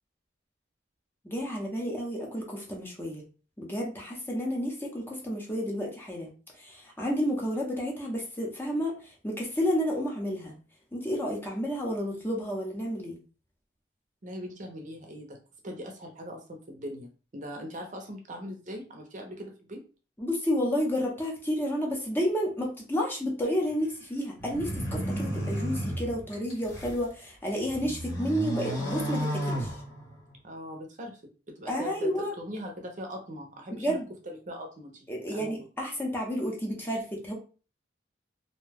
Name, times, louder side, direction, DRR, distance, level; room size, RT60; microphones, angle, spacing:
voice 1, 1.2-3.2 3.6-10.5 10.9-13.2 20.2-29.8 31.7-32.3 33.7-34.1 35.1-37.3, equal, 10° left, -1 dB, 0.7 m, -31 dB
voice 2, 14.2-15.4 15.6-19.8 30.4-31.2 31.5-34.0 34.2-35.6, equal, 45° right, 2 dB, 0.6 m, -40 dB
sound 1, 24.4-27.0 27.5-30.3, right 1 dB, 65° left, 1.2 m, -33 dB
2.6 x 2.2 x 3.3 m, 0.36 s
head